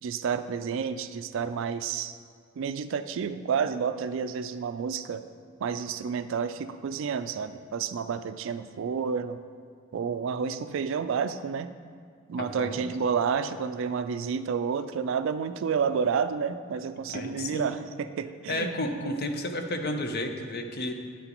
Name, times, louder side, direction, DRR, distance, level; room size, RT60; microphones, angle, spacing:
voice 1, 0.0-2.2 2.6-5.2 5.6-9.4 9.9-11.7 12.3-18.7, right 6 dB, 60° right, 11 dB, 0.3 m, -30 dB
voice 2, 12.4-12.9 17.1-17.7 18.5-20.9, left 1 dB, 45° left, 5 dB, 0.6 m, -32 dB
9.3 x 7.7 x 3.0 m, 2.1 s
head